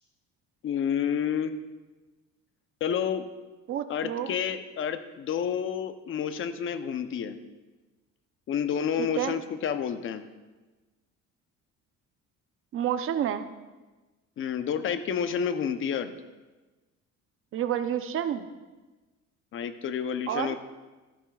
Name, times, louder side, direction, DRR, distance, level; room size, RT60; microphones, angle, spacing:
voice 1, 0.6-1.5 2.8-3.2 3.9-7.4 8.5-10.2 14.4-16.1 19.5-20.6, left 8 dB, 40° left, 10 dB, 0.7 m, -29 dB
voice 2, 3.7-4.3 9.0-9.3 12.7-13.5 17.5-18.5 20.3-20.6, right 10 dB, 45° right, 10 dB, 0.6 m, -29 dB
15.5 x 11.0 x 2.3 m, 1.2 s
cardioid pair, 145°, 31 cm